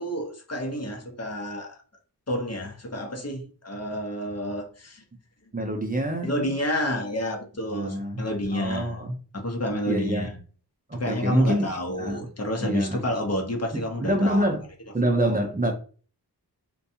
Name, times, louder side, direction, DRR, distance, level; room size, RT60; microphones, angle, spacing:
voice 1, 0.0-1.8 2.3-5.0 6.2-9.0 9.3-10.4 10.9-14.5 15.2-15.4, equal, 40° left, 0.7 m, -29 dB
voice 2, 5.5-6.3 7.7-8.2 8.5-9.1 9.9-10.3 10.9-11.7 12.0-12.3 12.6-13.0 14.0-14.6 14.9-15.7, right 1 dB, 20° right, 0.5 m, -26 dB
2.6 x 2.2 x 2.7 m
wide cardioid pair, 60°, 39 cm